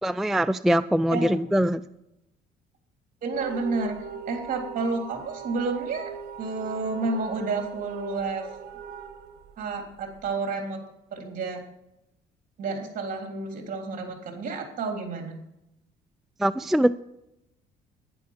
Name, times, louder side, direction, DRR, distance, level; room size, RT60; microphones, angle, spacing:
voice 1, 0.0-1.8 16.4-16.9, right 1 dB, ahead, 13 dB, 0.3 m, -22 dB
voice 2, 3.2-4.0 4.3-6.1 6.4-8.4 9.6-10.8 11.1-11.6 12.6-15.3, right 3 dB, 50° right, 3 dB, 3.5 m, -30 dB
sound 1, 3.3-10.3, right 6 dB, 75° right, 1.2 m, -40 dB
10.5 x 10.5 x 5.8 m, 0.85 s
cardioid pair, 110°, 17 cm